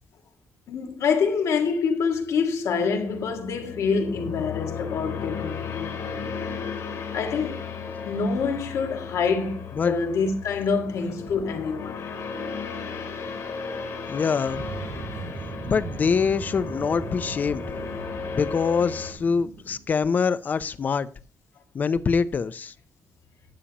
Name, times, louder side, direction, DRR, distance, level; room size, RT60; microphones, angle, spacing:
voice 1, 0.7-6.0 7.1-7.6 8.0-12.1, left 5 dB, 85° left, 1.7 m, -26 dB
sound 1, 3.1-19.1, left 5 dB, 70° left, 3.2 m, -35 dB
voice 2, 14.1-14.7 15.7-17.6 18.3-21.1 21.7-22.7, left 5 dB, 35° left, 0.5 m, -24 dB
sound 2, 14.5-20.0, right 4 dB, 80° right, 3.3 m, -38 dB
12.5 x 8.5 x 2.9 m
wide cardioid pair, 175°, 5 cm